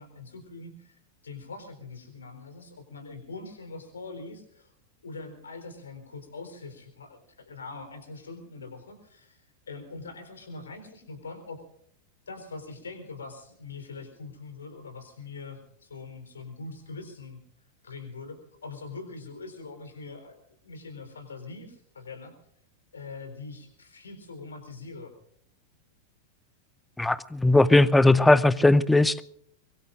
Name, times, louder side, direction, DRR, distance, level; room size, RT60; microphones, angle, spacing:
voice 1, 0.0-4.7 5.0-11.6 12.3-17.4 17.8-20.4 20.6-22.3 22.9-25.1, left 3 dB, 70° left, 4.2 m, -43 dB
voice 2, 27.0-29.2, left 2 dB, 5° left, 0.7 m, -19 dB
23.5 x 23.5 x 2.5 m
figure-of-eight pair, 90°, 0 cm